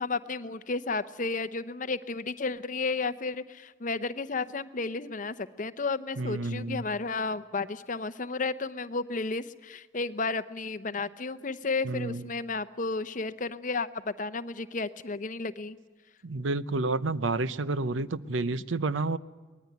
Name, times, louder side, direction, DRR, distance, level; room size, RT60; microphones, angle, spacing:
voice 1, 0.0-15.8, left 3 dB, 40° left, 13 dB, 0.8 m, -32 dB
voice 2, 6.2-6.8 11.8-12.3 16.2-19.2, right 3 dB, 90° right, 15 dB, 0.8 m, -30 dB
23.5 x 19.5 x 9.4 m, 1.4 s
head